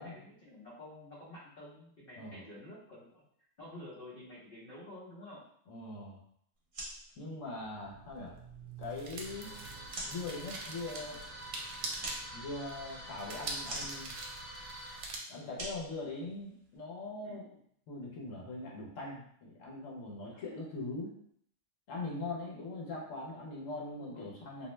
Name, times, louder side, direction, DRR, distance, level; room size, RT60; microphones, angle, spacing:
voice 1, 0.0-3.2 3.6-5.4 11.8-12.1 17.2-17.4 20.3-20.4 22.5-22.6 24.0-24.4, left 1 dB, 50° left, -8 dB, 0.8 m, -50 dB
voice 2, 5.7-6.2 7.2-8.4 8.8-9.5 10.1-11.2 12.3-14.1 15.3-17.5 17.9-21.1 21.9-24.7, left 2 dB, 80° left, -3 dB, 1.1 m, -41 dB
sound 1, 6.6-16.8, right 1 dB, 45° right, 0.9 m, -48 dB
sound 2, 7.6-15.2, right 3 dB, 75° right, 0.9 m, -45 dB
sound 3, 9.2-15.0, right 1 dB, 10° left, 0.7 m, -47 dB
2.5 x 2.1 x 3.0 m, 0.67 s
omnidirectional pair, 1.3 m